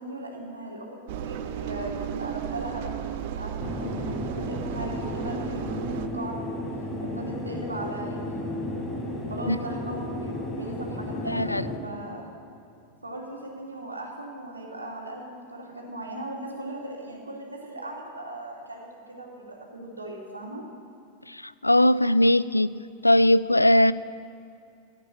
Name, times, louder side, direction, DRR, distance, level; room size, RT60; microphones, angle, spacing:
voice 1, 0.0-6.4 7.0-8.5 9.3-12.3 13.0-20.6, right 1 dB, 80° right, -1 dB, 3.1 m, -38 dB
Engine, 1.1-6.1, right 9 dB, 50° right, 0.8 m, -34 dB
sound 1, 3.6-11.8, left 1 dB, 15° left, 3.1 m, -33 dB
voice 2, 11.3-11.6 21.6-22.7 23.0-23.9, left 1 dB, 85° left, 17 dB, 0.4 m, -19 dB
15.0 x 8.4 x 9.6 m, 2.5 s
figure-of-eight pair, 90°, 0 cm